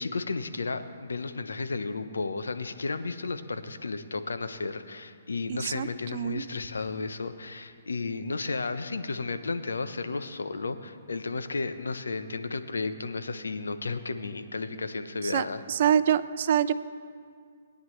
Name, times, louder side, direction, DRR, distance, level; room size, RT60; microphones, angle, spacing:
voice 1, 0.0-15.6, left 3 dB, 90° left, 10 dB, 0.7 m, -33 dB
voice 2, 5.5-6.4 15.2-16.7, right 9 dB, 55° right, 15 dB, 0.5 m, -26 dB
21.0 x 9.5 x 3.2 m, 2.1 s
hypercardioid pair, 145°, 0 cm